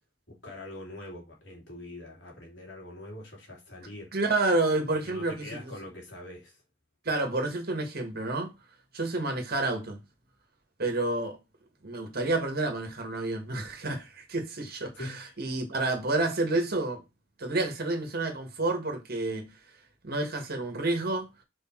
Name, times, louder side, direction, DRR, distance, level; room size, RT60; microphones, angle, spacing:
voice 1, 0.3-4.1 5.0-6.6 14.9-15.6, left 1 dB, 75° left, 3.0 m, -43 dB
voice 2, 4.1-5.6 7.0-8.5 8.9-10.0 10.8-11.4 11.8-17.0 17.4-19.5 20.0-21.3, right 2 dB, 55° right, 1.6 m, -29 dB
4.9 x 4.6 x 4.5 m
head